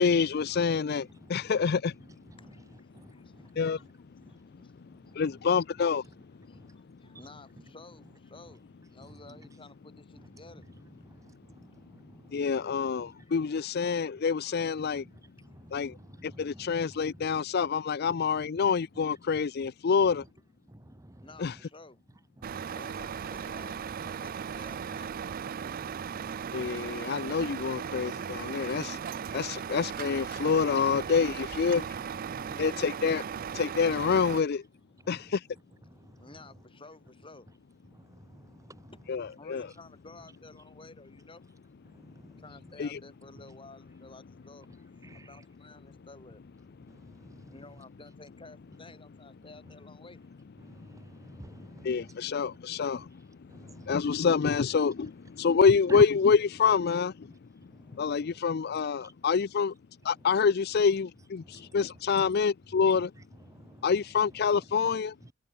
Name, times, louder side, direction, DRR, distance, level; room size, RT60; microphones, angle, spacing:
voice 1, 0.0-2.0 3.5-3.8 5.1-6.0 12.3-15.0 15.7-16.0 16.2-20.2 21.4-21.5 26.5-29.0 29.3-31.8 32.6-33.2 33.5-34.6 35.1-35.5 39.1-39.7 42.8-43.0 51.8-53.2 53.6-57.3 57.9-59.7 60.0-63.1 63.8-65.1, left 5 dB, 50° left, 0.4 m, -27 dB
voice 2, 0.5-1.5 2.0-3.8 4.2-4.4 4.9-5.4 6.5-6.7 7.0-7.3 9.0-9.5 10.1-10.3 10.7-13.2 14.6-14.7 14.9-17.4 18.1-18.7 19.3-19.7 20.0-20.3 20.7-21.6 22.4-23.1 23.6-23.7 24.0-24.1 25.4-27.2 30.9-31.4 31.7-32.8 35.0-35.3 35.8-36.3 37.9-38.9 41.9-42.4 45.0-45.4 46.9-47.5 50.6-52.1 53.0-53.1 53.5-54.2 55.9-56.1 57.7-58.4 59.0-59.1 61.4-62.3 62.7-64.0 64.3-65.3, right 1 dB, 15° right, 1.2 m, -50 dB
voice 3, 2.4-3.7 4.3-4.7 5.1-5.4 6.5-10.7 13.3-13.4 21.2-22.0 22.6-25.2 32.3-32.9 36.2-37.5 38.9-39.0 39.4-41.5 42.4-44.7 45.1-46.4 47.5-50.2, left 2 dB, 25° left, 3.8 m, -53 dB
Truck, 22.4-34.4, right 7 dB, 45° right, 0.4 m, -37 dB
head